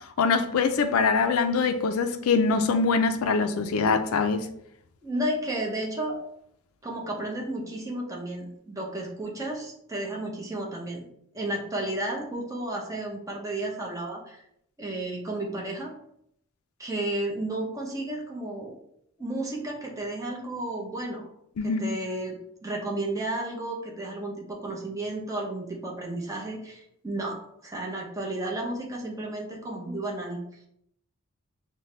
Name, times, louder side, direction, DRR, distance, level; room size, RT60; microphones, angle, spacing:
voice 1, 0.2-4.5 21.6-21.8, left 4 dB, 80° left, 0.4 m, -23 dB
voice 2, 5.0-6.2 6.8-11.1 11.3-14.4 14.8-15.9 16.8-18.8 19.2-21.3 21.6-30.4, right 1 dB, 15° right, 0.7 m, -32 dB
5.4 x 2.2 x 3.2 m
head